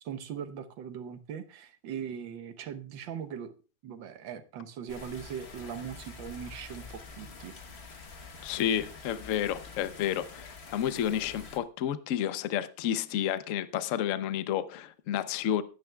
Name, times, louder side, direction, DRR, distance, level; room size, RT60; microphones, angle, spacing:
voice 1, 0.0-3.5 3.8-7.5, right 8 dB, 70° right, 1.6 m, -40 dB
sound 1, 4.9-11.6, left 4 dB, 40° left, 1.1 m, -47 dB
voice 2, 8.4-15.6, left 10 dB, 75° left, 0.7 m, -31 dB
19.5 x 9.4 x 2.3 m
omnidirectional pair, 2.3 m